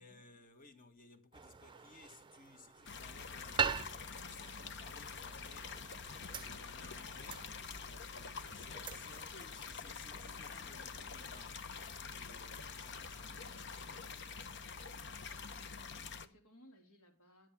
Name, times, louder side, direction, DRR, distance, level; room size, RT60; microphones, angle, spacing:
voice 1, 0.0-5.9 6.3-7.5 7.7-11.7 12.1-14.2, left 3 dB, 40° left, 1.6 m, -60 dB
sound 1, 1.3-11.5, right 6 dB, 20° right, 0.6 m, -44 dB
sound 2, 2.9-16.3, left 5 dB, 55° left, 1.0 m, -46 dB
voice 2, 15.2-17.5, equal, 75° left, 3.3 m, -64 dB
13.0 x 7.7 x 7.2 m
head